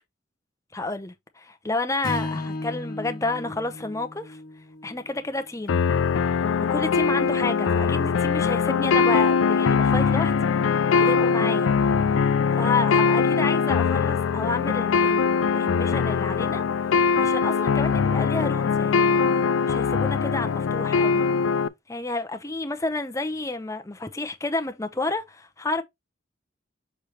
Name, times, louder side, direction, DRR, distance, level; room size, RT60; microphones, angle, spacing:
voice 1, 0.7-4.4 4.8-5.8 6.7-10.3 11.0-11.7 12.5-16.6 17.1-21.2 21.9-25.8, left 2 dB, 15° left, 0.7 m, -30 dB
Strum, 2.0-6.4, left 2 dB, 45° left, 1.2 m, -36 dB
sound 1, 5.7-21.7, left 5 dB, 85° left, 0.4 m, -22 dB
6.6 x 4.4 x 3.2 m
head